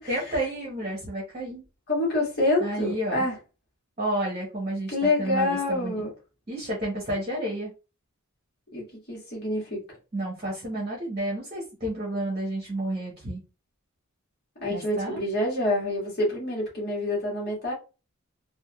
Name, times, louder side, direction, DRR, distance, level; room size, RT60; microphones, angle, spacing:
voice 1, 0.1-1.6 2.6-3.3 4.0-6.0 6.5-7.7 10.1-13.4 14.7-15.2, right 1 dB, 30° right, 1.0 m, -31 dB
voice 2, 1.9-3.3 4.9-6.1 8.7-9.8 14.6-17.7, left 2 dB, 45° left, 1.6 m, -27 dB
3.4 x 2.5 x 2.3 m
head